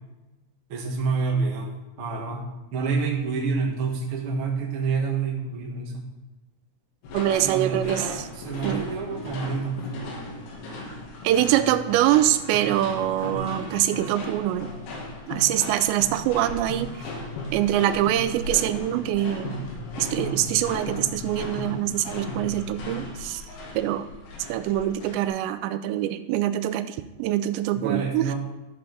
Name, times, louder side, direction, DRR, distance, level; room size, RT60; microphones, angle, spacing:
voice 1, 0.7-2.4 2.7-6.0 7.4-9.8 27.7-28.3, right 4 dB, 55° right, -1 dB, 1.5 m, -28 dB
sound 1, 7.0-25.3, left 1 dB, 70° left, 3.4 m, -36 dB
voice 2, 7.1-8.1 8.6-8.8 11.2-14.7 15.3-16.9 17.5-19.5 20.0-23.4 23.8-24.1 24.5-28.3, right 13 dB, 85° right, 11 dB, 2.7 m, -24 dB
14.0 x 5.5 x 4.0 m, 1.1 s
omnidirectional pair, 5.0 m